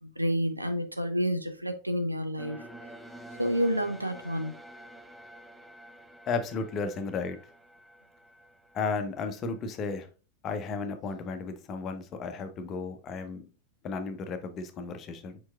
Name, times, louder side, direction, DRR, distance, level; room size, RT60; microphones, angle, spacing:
voice 1, 0.0-2.6 3.4-4.6, equal, 85° right, 0.6 m, -29 dB
sound 1, 2.4-9.6, right 1 dB, ahead, 0.6 m, -49 dB
voice 2, 6.3-7.4 8.7-10.1 10.4-13.5 13.8-15.4, left 4 dB, 30° left, 0.7 m, -34 dB
4.9 x 4.5 x 2.3 m
figure-of-eight pair, 90°, 0 cm